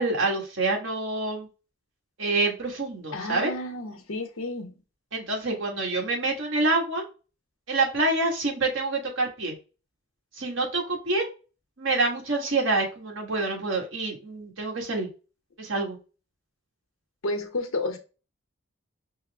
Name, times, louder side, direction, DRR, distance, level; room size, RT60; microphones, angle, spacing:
voice 1, 0.0-1.5 2.2-3.5 5.1-7.0 7.7-9.5 10.4-11.3 11.8-15.1 15.6-16.0, right 2 dB, 70° right, 1 dB, 1.5 m, -27 dB
voice 2, 3.1-4.8 17.2-18.0, left 2 dB, 90° left, 5 dB, 0.9 m, -31 dB
5.5 x 2.0 x 3.4 m, 0.32 s
head